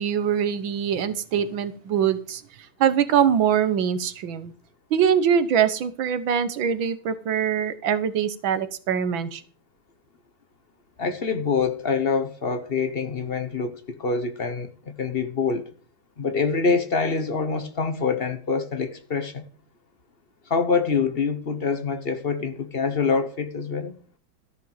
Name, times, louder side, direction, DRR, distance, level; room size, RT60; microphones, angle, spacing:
voice 1, 0.0-2.4 2.8-4.5 4.9-9.4, right 8 dB, 80° right, 1.8 m, -23 dB
voice 2, 11.0-15.7 16.2-19.5 20.5-24.0, left 5 dB, 35° left, 1.2 m, -25 dB
13.5 x 6.2 x 7.2 m
omnidirectional pair, 2.1 m